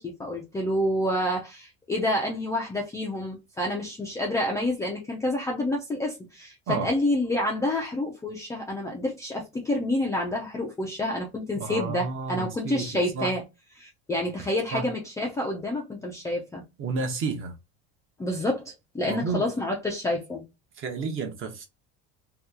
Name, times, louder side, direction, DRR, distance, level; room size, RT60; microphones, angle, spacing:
voice 1, 0.0-13.4 13.8-16.6 18.2-20.4, left 1 dB, 10° left, 0.4 m, -28 dB
voice 2, 11.6-13.3 14.7-14.9 16.8-17.5 19.1-19.4 20.8-21.7, right 4 dB, 35° right, 0.8 m, -31 dB
2.9 x 2.3 x 3.5 m
cardioid pair, 150°, 36 cm